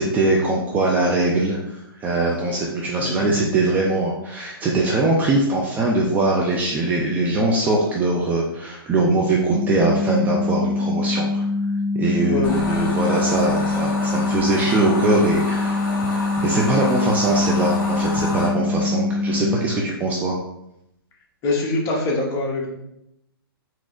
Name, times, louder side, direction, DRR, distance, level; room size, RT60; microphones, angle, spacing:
voice 1, 0.0-11.4 11.9-20.4, right 2 dB, 15° right, -2 dB, 0.3 m, -22 dB
sound 1, 9.5-19.5, left 3 dB, 40° right, 0.7 m, -24 dB
voice 2, 12.3-12.6 21.4-22.7, left 2 dB, 25° left, -1 dB, 0.9 m, -23 dB
sound 2, 12.4-18.5, left 2 dB, 45° left, 1.3 m, -30 dB
3.9 x 2.8 x 2.4 m, 0.82 s
hypercardioid pair, 130°, 13 cm